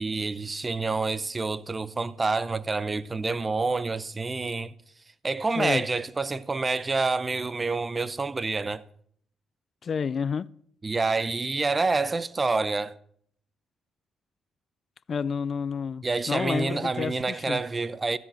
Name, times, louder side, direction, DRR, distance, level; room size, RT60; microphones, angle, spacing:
voice 1, 0.0-4.7 5.2-8.8 10.8-13.0 16.0-18.2, right 3 dB, 25° right, 0.7 m, -28 dB
voice 2, 9.8-10.5 15.1-17.6, left 6 dB, 45° left, 0.4 m, -30 dB
13.5 x 7.3 x 8.8 m
cardioid pair, 90°, 0 cm